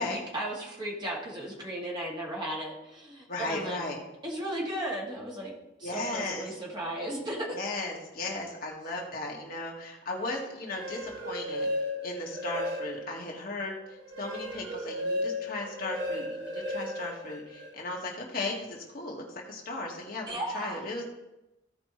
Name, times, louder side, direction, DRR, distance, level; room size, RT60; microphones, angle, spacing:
voice 1, 0.0-3.8 4.2-5.5 5.8-7.5 20.3-20.9, right 1 dB, 25° right, -4 dB, 2.4 m, -35 dB
voice 2, 3.3-4.0 5.8-6.5 7.5-11.7 12.0-13.7 14.2-21.0, left 2 dB, 50° left, -1 dB, 1.8 m, -36 dB
sound 1, 10.5-13.2 13.7-18.0, left 1 dB, 60° right, 2.3 m, -35 dB
16.0 x 5.3 x 3.2 m, 0.94 s
head